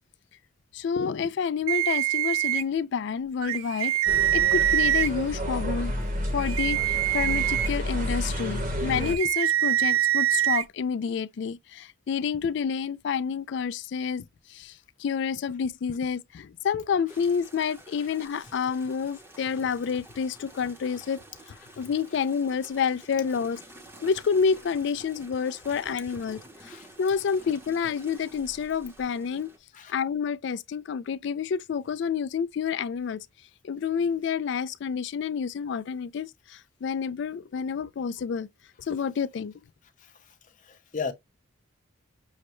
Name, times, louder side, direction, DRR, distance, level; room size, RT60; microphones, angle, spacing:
voice 1, 0.7-4.0 4.3-5.9 6.3-21.2 21.5-23.6 24.0-26.7 27.0-29.5 29.9-33.3 33.6-38.5 38.8-39.5, left 6 dB, 60° left, 0.3 m, -29 dB
sound 1, 1.7-2.6 3.4-5.1 6.4-7.7 9.0-10.6, right 14 dB, 75° right, 0.3 m, -24 dB
sound 2, 4.1-9.2, equal, 40° right, 0.9 m, -30 dB
sound 3, 17.1-29.6, right 1 dB, 10° right, 0.7 m, -50 dB
voice 2, 40.0-40.3 40.6-41.1, left 5 dB, 40° left, 0.7 m, -36 dB
6.3 x 2.1 x 2.9 m
head